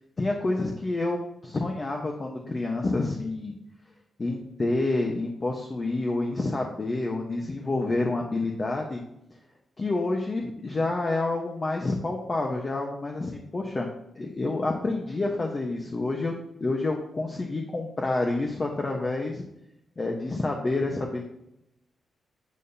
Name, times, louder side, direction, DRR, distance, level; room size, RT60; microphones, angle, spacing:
voice 1, 0.2-3.5 4.2-9.0 9.8-13.9 14.2-16.3 16.6-19.4 20.0-21.2, left 2 dB, 30° left, 1 dB, 1.2 m, -28 dB
11.0 x 8.9 x 2.8 m, 0.82 s
wide cardioid pair, 120°, 0 cm